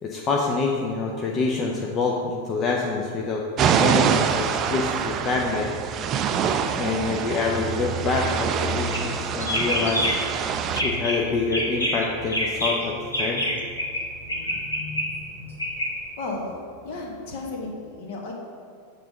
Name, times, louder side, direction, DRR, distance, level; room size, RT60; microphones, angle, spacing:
voice 1, 0.0-3.4 3.8-5.7 6.8-10.1 10.8-13.4, left 4 dB, 30° left, -1 dB, 0.7 m, -26 dB
sound 1, 3.6-10.8, right 7 dB, 30° right, 0.4 m, -25 dB
Fixed-wing aircraft airplane, 4.1-17.6, right 4 dB, 5° right, 1.2 m, -40 dB
sound 2, 8.8-9.1 9.4-10.3 10.7-11.2 11.5-14.0 14.3-15.9, equal, 80° left, 1.7 m, -26 dB
voice 2, 14.2-14.5 16.2-16.6 16.8-18.3, left 3 dB, 50° left, 0 dB, 1.5 m, -35 dB
7.6 x 3.9 x 6.6 m, 2.2 s
figure-of-eight pair, 90°, 0 cm